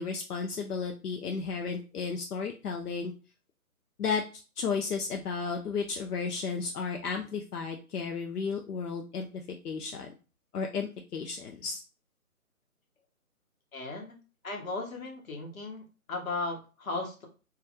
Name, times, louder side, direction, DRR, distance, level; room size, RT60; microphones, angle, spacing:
voice 1, 0.0-3.1 4.0-4.2 4.6-9.3 9.6-10.1 10.5-11.8, left 5 dB, 85° left, 3 dB, 0.5 m, -33 dB
voice 2, 13.7-14.2 14.4-15.8 16.1-17.3, left 3 dB, 65° left, 1 dB, 1.0 m, -36 dB
2.3 x 2.1 x 2.8 m, 0.33 s
figure-of-eight pair, 150°, 44 cm